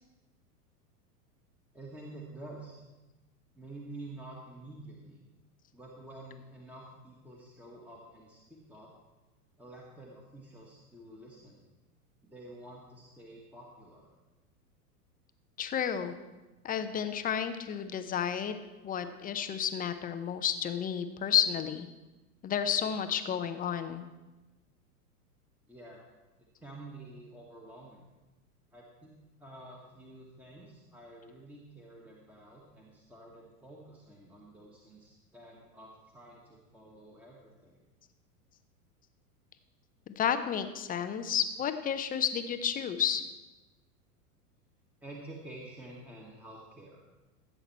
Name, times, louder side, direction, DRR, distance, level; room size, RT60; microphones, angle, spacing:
voice 1, 1.7-2.8 3.5-5.2 5.7-8.9 9.6-11.6 12.2-14.1 25.7-26.0 26.4-28.1 28.7-29.1 29.4-37.8 45.0-47.0, right 2 dB, 5° right, -2 dB, 1.5 m, -49 dB
voice 2, 15.6-16.1 16.6-18.5 18.8-21.9 22.4-24.0 40.2-43.2, left 8 dB, 20° left, 9 dB, 0.6 m, -31 dB
15.5 x 7.9 x 4.4 m, 1.1 s
hypercardioid pair, 95°, 47 cm